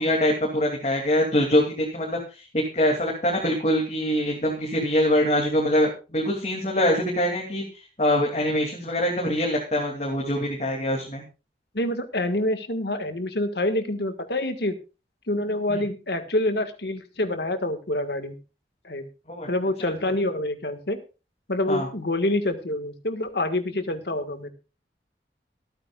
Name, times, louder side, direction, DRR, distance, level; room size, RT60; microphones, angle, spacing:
voice 1, 0.0-2.2 2.5-7.6 8.0-11.2 15.7-15.8 19.3-19.5 19.8-19.9 21.7-21.9, left 1 dB, 40° left, -1 dB, 2.8 m, -24 dB
voice 2, 11.7-14.7 15.3-18.4 18.8-19.1 19.5-21.0 21.5-24.5, left 1 dB, 70° left, 8 dB, 1.7 m, -26 dB
25.5 x 9.1 x 2.5 m, 0.31 s
head